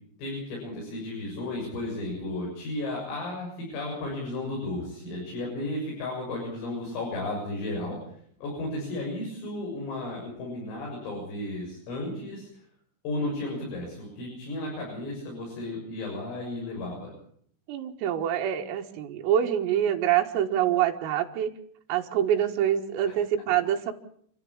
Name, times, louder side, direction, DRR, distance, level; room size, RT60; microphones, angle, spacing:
voice 1, 0.2-8.0 8.4-12.5 13.0-17.1, left 2 dB, 85° left, -2 dB, 9.9 m, -34 dB
voice 2, 17.7-21.5 21.9-23.9, right 10 dB, 85° right, 2 dB, 4.3 m, -25 dB
29.5 x 13.5 x 8.8 m, 0.63 s
omnidirectional pair, 5.8 m